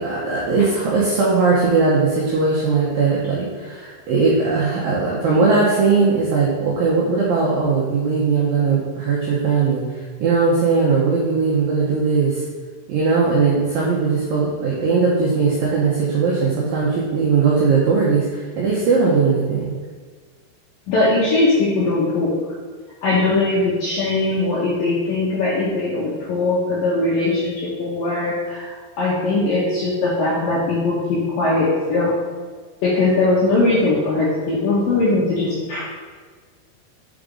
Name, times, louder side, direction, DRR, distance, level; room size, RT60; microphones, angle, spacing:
voice 1, 0.0-12.4 12.9-19.7, right 4 dB, 80° right, -5 dB, 2.0 m, -19 dB
voice 2, 20.9-22.3 23.0-32.1 32.8-35.9, left 2 dB, 75° left, -7 dB, 2.0 m, -20 dB
5.8 x 5.1 x 3.7 m, 1.5 s
omnidirectional pair, 5.3 m